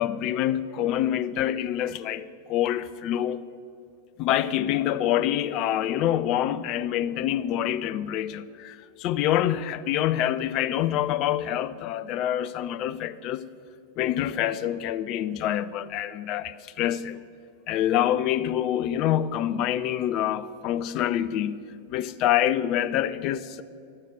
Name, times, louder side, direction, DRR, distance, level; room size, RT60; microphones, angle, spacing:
voice 1, 0.0-3.4 4.2-13.4 14.0-17.2 17.7-21.6 21.9-23.6, left 11 dB, 40° left, 0.5 m, -26 dB
12.0 x 7.5 x 8.0 m
figure-of-eight pair, 90°, 0 cm